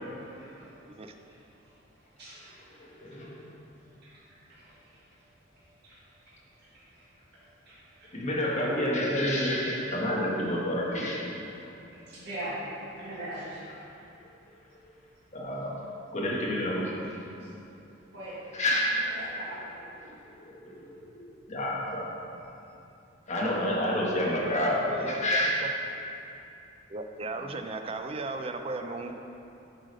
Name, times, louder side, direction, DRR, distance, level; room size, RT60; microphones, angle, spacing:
voice 1, 0.1-8.3 11.3-13.6 17.4-17.7 18.1-19.9 21.8-22.0, right 1 dB, 55° right, -11 dB, 1.7 m, -45 dB
voice 2, 2.8-3.4 8.1-11.2 15.3-15.7 16.1-17.2 18.5-18.9 20.0-22.1 23.3-25.6, left 1 dB, 35° left, -5 dB, 1.4 m, -29 dB
voice 3, 24.8-25.7 26.9-29.1, right 2 dB, 30° right, 6 dB, 0.4 m, -36 dB
7.4 x 4.9 x 5.3 m, 2.8 s
head